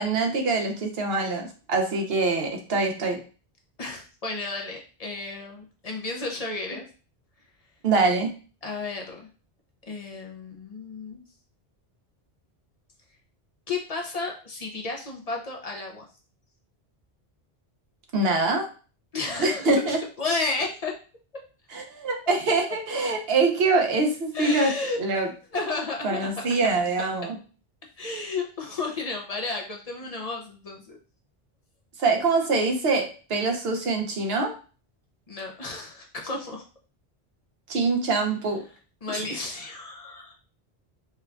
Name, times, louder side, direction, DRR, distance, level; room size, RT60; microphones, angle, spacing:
voice 1, 0.0-3.2 7.8-8.3 18.1-18.7 19.4-20.0 21.7-24.7 25.0-25.3 26.0-27.4 32.0-34.5 37.7-38.6 39.1-39.2, right 3 dB, 75° right, 3 dB, 1.0 m, -24 dB
voice 2, 3.8-6.8 8.6-9.3 9.9-11.2 13.7-16.0 19.1-20.9 22.3-22.4 24.3-25.0 25.5-26.5 28.0-31.0 35.3-36.6 39.0-40.3, left 3 dB, 45° left, 1 dB, 0.5 m, -32 dB
4.2 x 2.2 x 2.4 m, 0.37 s
omnidirectional pair, 1.0 m